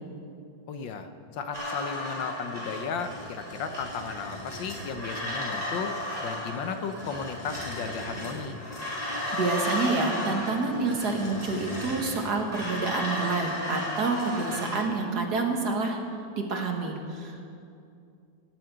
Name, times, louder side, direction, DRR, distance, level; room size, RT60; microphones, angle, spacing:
voice 1, 0.7-5.9 6.2-8.6, left 6 dB, 80° left, 8 dB, 1.7 m, -35 dB
sound 1, 1.5-14.8, left 1 dB, 20° left, 4.8 m, -34 dB
voice 2, 9.3-16.0 16.4-17.4, right 3 dB, 60° right, 2 dB, 2.1 m, -28 dB
19.0 x 7.7 x 9.1 m, 2.5 s
omnidirectional pair, 2.0 m